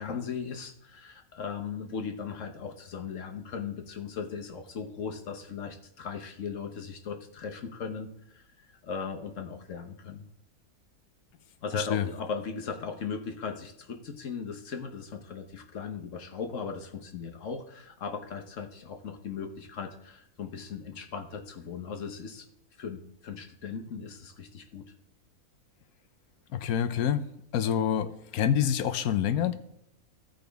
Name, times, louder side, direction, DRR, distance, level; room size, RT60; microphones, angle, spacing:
voice 1, 0.0-10.3 11.6-22.5 22.8-24.9, left 5 dB, 60° left, 4 dB, 1.3 m, -38 dB
voice 2, 11.7-12.1 26.5-27.3 27.5-29.6, left 9 dB, 85° left, 10 dB, 1.2 m, -27 dB
15.5 x 5.2 x 3.4 m, 0.77 s
omnidirectional pair, 1.5 m